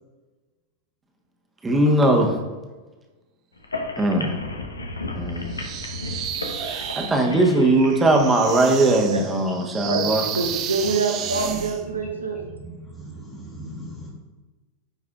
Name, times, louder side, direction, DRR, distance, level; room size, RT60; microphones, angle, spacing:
voice 1, 1.6-2.3 4.0-4.4 5.2-5.5 7.0-10.2, right 2 dB, 10° right, 1 dB, 1.1 m, -19 dB
sound 1, 3.6-9.0, left 2 dB, 75° left, 0.8 m, -34 dB
sound 2, 5.5-11.8, right 10 dB, 35° right, 0.5 m, -32 dB
voice 2, 10.3-12.4, right 3 dB, 75° right, 3 dB, 1.1 m, -25 dB
voice 3, 12.6-14.1, right 1 dB, 15° left, -2 dB, 1.9 m, -38 dB
9.6 x 4.8 x 2.4 m, 1.2 s
figure-of-eight pair, 90°, 0 cm